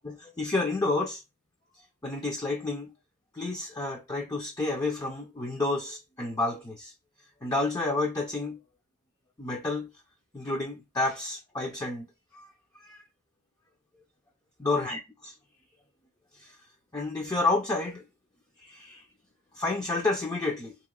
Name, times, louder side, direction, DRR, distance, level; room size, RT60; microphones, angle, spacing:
voice 1, 0.0-1.2 2.0-2.9 3.3-6.9 7.4-8.6 9.4-9.9 10.3-12.1 12.3-12.5 12.8-13.0 14.6-15.3 16.4-16.6 16.9-18.0 18.6-19.0 19.5-20.7, left 2 dB, 15° left, 0.6 m, -30 dB
3.7 x 3.0 x 3.6 m
head